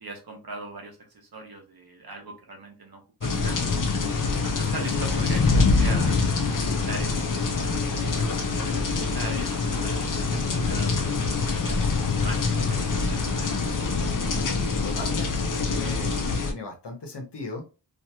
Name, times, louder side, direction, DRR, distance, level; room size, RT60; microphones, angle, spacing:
voice 1, 0.0-3.8 4.4-6.1 6.6-11.8 12.2-13.6, right 2 dB, 60° right, 3 dB, 0.9 m, -41 dB
sound 1, 3.2-16.5, left 4 dB, 50° left, 0.5 m, -25 dB
sound 2, 4.0-14.0, right 1 dB, 40° right, 1.3 m, -44 dB
voice 2, 14.8-16.2 16.5-17.6, left 3 dB, 75° left, 3 dB, 0.9 m, -37 dB
2.8 x 2.6 x 2.2 m, 0.31 s
wide cardioid pair, 60°, 42 cm